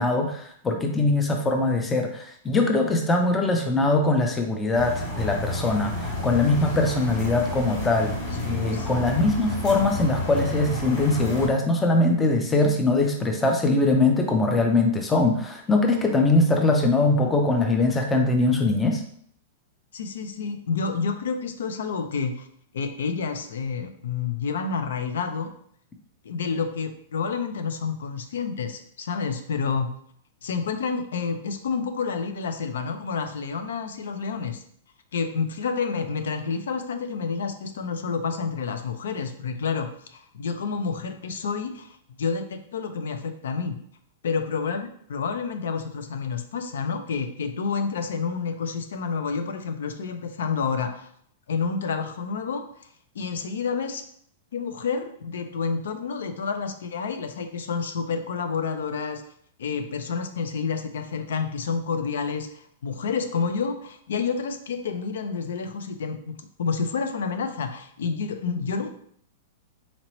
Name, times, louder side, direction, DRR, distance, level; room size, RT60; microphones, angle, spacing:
voice 1, 0.0-8.1 8.5-19.0, left 2 dB, 10° left, 3 dB, 0.4 m, -22 dB
sound 1, 4.7-11.5, left 2 dB, 45° left, 1.3 m, -30 dB
voice 2, 19.9-22.5 22.7-25.5 26.2-29.9 30.4-34.6 35.1-43.8 44.2-51.1 51.5-52.7 53.1-54.0 54.5-59.2 59.6-68.9, left 5 dB, 85° left, 8 dB, 0.5 m, -29 dB
3.9 x 2.9 x 3.0 m, 0.64 s
supercardioid pair, 165°, 0 cm